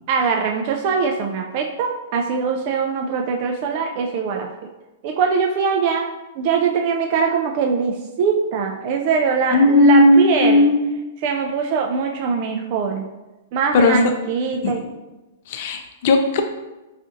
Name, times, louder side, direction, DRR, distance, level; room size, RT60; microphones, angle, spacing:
voice 1, 0.1-4.5 5.0-6.1 6.4-10.7 11.2-13.1 13.5-14.8, right 5 dB, 50° right, 1 dB, 0.3 m, -22 dB
voice 2, 9.5-10.8 13.7-14.0 14.6-14.9 15.5-16.4, left 2 dB, 55° left, 6 dB, 0.5 m, -15 dB
4.1 x 2.4 x 2.5 m, 1.1 s
hypercardioid pair, 130°, 0 cm